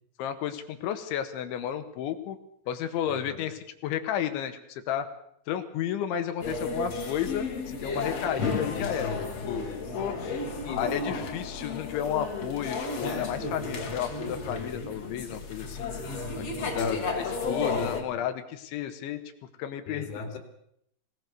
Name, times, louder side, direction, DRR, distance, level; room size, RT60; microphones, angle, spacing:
voice 1, 0.2-2.4 2.7-5.1 5.5-9.1 9.5-9.7 10.0-10.1 10.8-15.9 16.4-19.2 19.6-20.1, left 9 dB, 80° left, 9 dB, 3.9 m, -32 dB
voice 2, 3.1-3.5 8.7-10.9 16.7-17.1 17.7-18.0 19.9-20.4, left 5 dB, 60° left, 6 dB, 4.0 m, -38 dB
sound 1, 6.4-18.0, left 3 dB, 40° left, 3.4 m, -33 dB
25.0 x 18.5 x 6.7 m, 0.73 s
omnidirectional pair, 5.4 m